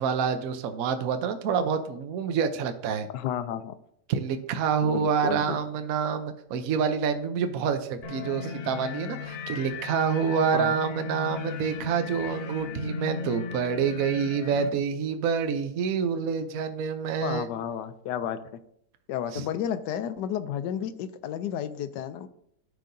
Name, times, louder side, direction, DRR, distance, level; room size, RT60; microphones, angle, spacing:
voice 1, 0.0-3.1 4.1-17.5 19.3-19.4, right 6 dB, 65° right, 8 dB, 1.0 m, -27 dB
voice 2, 3.1-3.8 4.8-5.6 10.5-10.7 17.2-18.5 19.1-22.3, left 9 dB, 85° left, 11 dB, 1.2 m, -32 dB
sound 1, 8.0-14.7, left 5 dB, 65° left, 0.6 m, -36 dB
13.5 x 4.7 x 2.6 m, 0.72 s
omnidirectional pair, 1.8 m